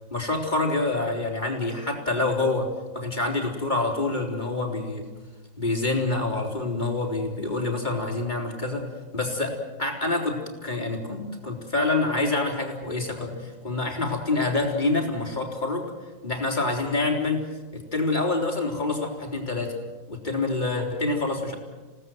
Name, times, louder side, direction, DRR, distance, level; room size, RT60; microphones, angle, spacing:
voice 1, 0.1-2.7 2.9-5.0 5.6-8.9 9.1-15.9 16.2-17.4 17.7-19.8 20.1-21.6, left 2 dB, 30° left, 1 dB, 4.0 m, -27 dB
29.0 x 18.0 x 7.9 m, 1.2 s
omnidirectional pair, 1.5 m